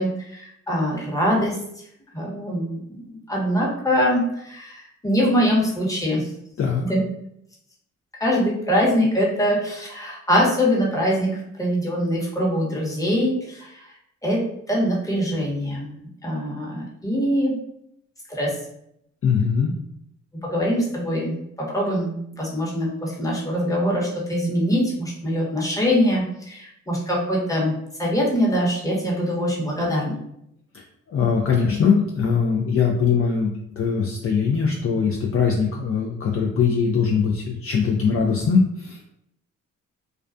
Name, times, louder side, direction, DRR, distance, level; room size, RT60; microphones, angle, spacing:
voice 1, 0.0-1.6 2.1-6.2 6.8-7.0 8.2-11.3 11.6-13.7 14.2-14.4 14.7-15.9 16.2-17.6 18.3-18.5 20.4-30.2, equal, 10° left, -4 dB, 1.0 m, -23 dB
voice 2, 19.2-19.7 31.1-33.5 33.8-39.1, left 6 dB, 45° left, -1 dB, 0.4 m, -21 dB
2.2 x 2.2 x 2.5 m, 0.76 s
supercardioid pair, 55°, 32 cm